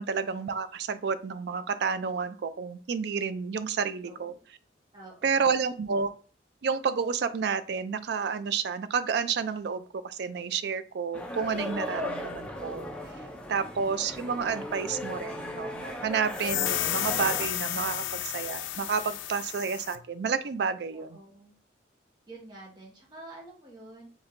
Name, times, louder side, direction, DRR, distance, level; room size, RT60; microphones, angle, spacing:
voice 1, 0.0-4.3 5.2-6.1 6.6-12.9 13.5-21.1, right 6 dB, 60° right, 12 dB, 0.3 m, -30 dB
voice 2, 4.0-4.4 4.9-5.6 20.9-21.6 22.3-24.1, right 2 dB, 25° right, -3 dB, 1.0 m, -48 dB
sound 1, 11.1-17.5, left 1 dB, 5° left, 0.4 m, -37 dB
sound 2, 16.3-20.0, left 12 dB, 80° left, 0.3 m, -32 dB
4.3 x 3.0 x 2.5 m, 0.40 s
head